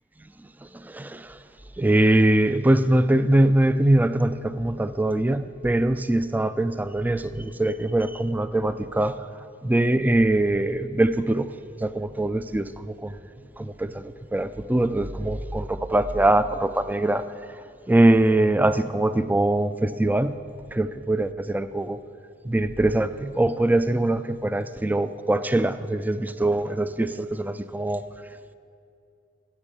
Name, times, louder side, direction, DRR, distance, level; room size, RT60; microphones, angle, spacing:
voice 1, 0.6-1.4 1.8-9.3 9.6-11.5 11.8-13.2 13.6-17.3 17.5-20.4 20.7-22.0 22.4-28.0, right 1 dB, 10° right, 12 dB, 0.4 m, -22 dB
16.5 x 7.1 x 6.8 m, 2.4 s
head